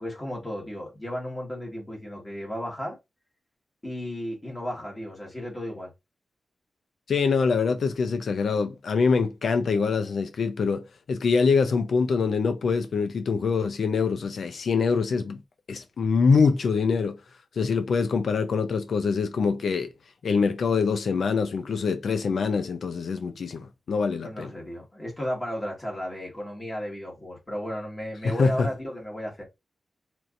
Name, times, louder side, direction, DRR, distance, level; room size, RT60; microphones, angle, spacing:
voice 1, 0.0-3.0 3.8-5.9 24.2-29.4, equal, 25° left, 1.5 m, -34 dB
voice 2, 7.1-15.4 15.7-17.2 17.6-19.9 20.2-24.5 28.2-28.7, left 5 dB, 80° left, 0.5 m, -24 dB
4.4 x 2.6 x 2.5 m
wide cardioid pair, 90°, 0 cm